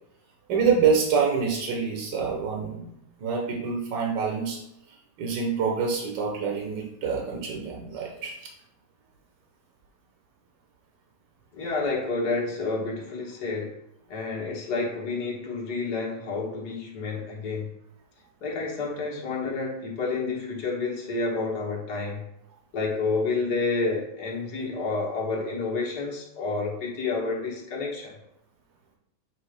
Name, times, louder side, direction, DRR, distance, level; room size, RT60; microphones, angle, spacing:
voice 1, 0.5-2.9 3.2-4.6 5.2-8.3, right 5 dB, 85° right, -1 dB, 1.7 m, -26 dB
voice 2, 11.5-13.7 14.1-17.7 18.4-22.2 22.7-28.1, left 3 dB, 65° left, -3 dB, 1.9 m, -29 dB
7.8 x 2.8 x 5.0 m, 0.80 s
omnidirectional pair, 1.9 m